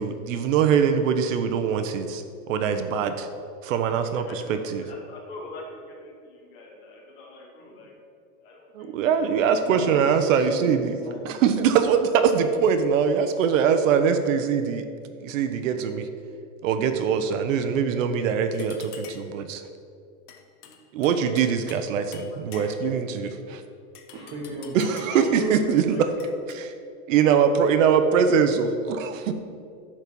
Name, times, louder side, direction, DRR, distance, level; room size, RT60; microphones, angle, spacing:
voice 1, 0.0-3.3 3.6-4.8 8.7-11.0 11.2-14.9 15.2-16.1 16.6-19.6 20.9-23.6 24.7-26.1 26.5-26.7 27.1-29.3, right 7 dB, 60° right, 8 dB, 0.9 m, -23 dB
voice 2, 4.0-8.0 8.4-8.9 21.9-23.6 25.1-26.2, left 1 dB, 45° left, -1 dB, 2.3 m, -41 dB
voice 3, 9.7-11.5 22.9-23.2 24.1-25.2, right 2 dB, 15° right, -3 dB, 0.4 m, -36 dB
sound 1, 18.5-19.4 20.3-21.9 22.1-23.0 23.9-25.3 26.2-26.6, left 7 dB, 85° left, 1.3 m, -47 dB
11.0 x 4.3 x 6.9 m, 2.4 s
supercardioid pair, 165°, 44 cm